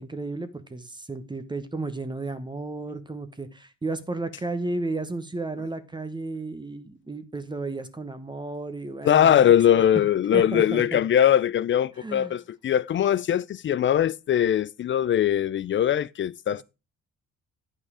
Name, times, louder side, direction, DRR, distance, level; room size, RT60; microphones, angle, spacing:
voice 1, 0.0-9.4 9.7-10.0 10.3-11.0 12.0-12.4, right 2 dB, 15° right, 1.0 m, -33 dB
voice 2, 9.0-16.6, left 10 dB, 40° left, 0.4 m, -21 dB
9.2 x 5.4 x 4.9 m
cardioid pair, 90°, 30 cm